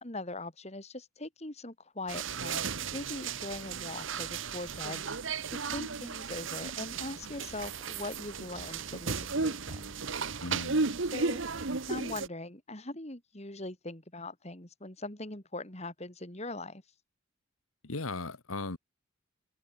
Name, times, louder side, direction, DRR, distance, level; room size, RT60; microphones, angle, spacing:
voice 1, 0.0-5.0 5.7-9.9 11.1-11.4 11.9-16.8, left 2 dB, 30° left, 2.9 m, -41 dB
sound 1, 2.1-12.3, right 4 dB, 65° right, 1.2 m, -35 dB
voice 2, 10.4-11.0 17.8-18.8, left 3 dB, 85° left, 1.8 m, -37 dB
open air
head